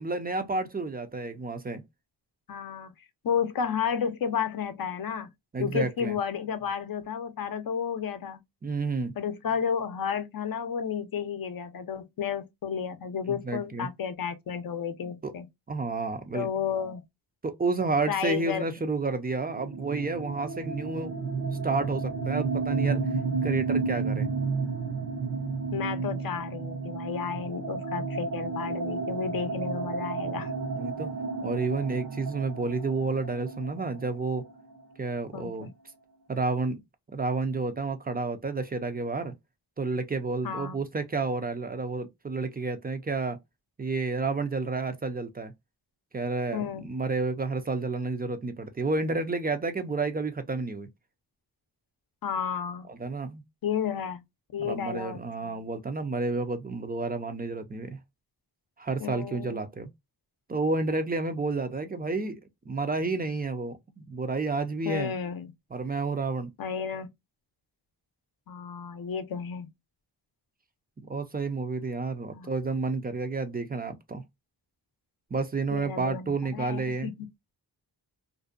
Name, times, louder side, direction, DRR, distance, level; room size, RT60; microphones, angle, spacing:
voice 1, 0.0-1.8 5.5-6.2 8.6-9.2 13.3-13.9 15.0-15.3 15.7-16.5 17.4-21.1 21.6-23.0 23.4-24.3 30.7-31.1 31.4-34.4 35.0-35.7 36.3-36.8 37.1-39.3 39.8-43.4 43.8-45.5 46.1-50.9 52.9-53.4 54.6-58.0 58.8-59.9 60.5-62.4 62.7-65.2 65.7-66.5 71.0-74.2 75.3-77.1, right 3 dB, 25° right, 0.4 m, -30 dB
voice 2, 2.5-2.9 3.2-5.3 5.6-8.4 9.2-15.5 16.3-17.0 18.1-18.7 25.7-30.5 35.3-35.7 40.4-40.8 46.5-46.9 52.2-52.9 53.6-54.2 54.5-55.6 59.0-59.6 64.8-65.5 66.6-67.1 68.5-69.7 72.3-72.5 75.7-77.3, left 7 dB, 55° left, 0.6 m, -32 dB
sound 1, 19.4-35.0, right 4 dB, 80° right, 0.9 m, -32 dB
2.6 x 2.1 x 2.4 m
wide cardioid pair, 95°, 41 cm